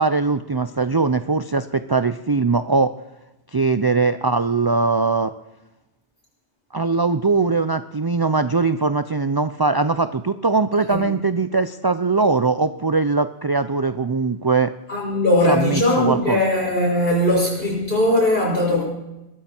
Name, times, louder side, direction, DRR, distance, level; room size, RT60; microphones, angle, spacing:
voice 1, 0.0-2.9 3.5-5.3 6.7-14.7 15.5-16.4, right 4 dB, 35° right, 11 dB, 0.3 m, -21 dB
voice 2, 14.9-18.8, left 1 dB, 55° left, -3 dB, 6.1 m, -19 dB
21.5 x 14.0 x 4.5 m, 0.96 s
omnidirectional pair, 1.2 m